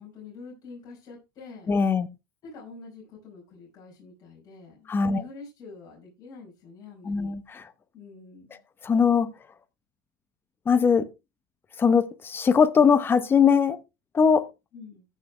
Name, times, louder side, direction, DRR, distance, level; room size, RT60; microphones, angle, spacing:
voice 1, 0.0-1.7 2.4-7.3 7.9-8.6 14.7-15.0, left 4 dB, 35° left, 5.2 m, -46 dB
voice 2, 1.7-2.1 4.9-5.2 7.1-7.4 8.8-9.3 10.7-11.1 11.8-13.8 14.1-14.4, left 6 dB, 20° left, 0.9 m, -20 dB
15.0 x 6.2 x 3.3 m
supercardioid pair, 135°, 11 cm